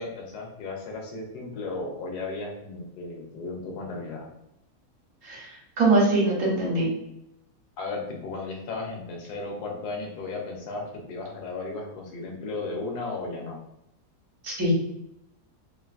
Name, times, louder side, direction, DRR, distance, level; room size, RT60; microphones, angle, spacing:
voice 1, 0.0-4.3 7.8-13.6, left 3 dB, 80° left, 1 dB, 1.2 m, -35 dB
voice 2, 5.8-6.9 14.4-14.7, right 2 dB, 60° right, -4 dB, 1.1 m, -22 dB
3.1 x 2.5 x 2.4 m, 0.81 s
omnidirectional pair, 1.7 m